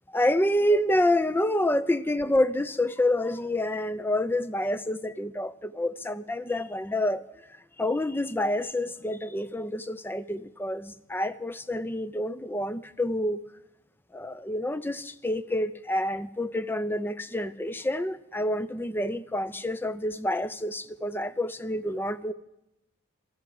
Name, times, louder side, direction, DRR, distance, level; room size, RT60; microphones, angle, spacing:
voice 1, 0.1-7.2 7.8-13.5 14.1-22.3, left 1 dB, 10° left, 14 dB, 0.4 m, -28 dB
13.5 x 7.9 x 9.4 m, 0.90 s
head